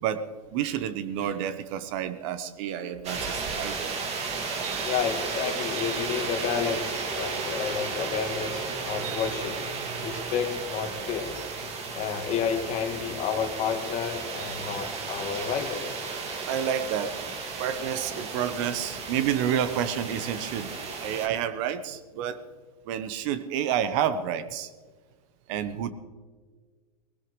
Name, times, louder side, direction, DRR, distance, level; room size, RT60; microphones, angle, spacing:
voice 1, 0.0-3.9 9.8-10.2 16.5-17.2 17.6-22.4 22.9-24.7 25.5-25.9, right 9 dB, 55° right, 12 dB, 1.0 m, -30 dB
sound 1, 3.0-21.3, right 4 dB, 35° right, 2.3 m, -34 dB
voice 2, 4.8-9.6 10.0-11.3 11.9-15.9, left 7 dB, 35° left, 5 dB, 1.9 m, -30 dB
20.0 x 17.5 x 3.2 m, 1.5 s
hypercardioid pair, 110°, 19 cm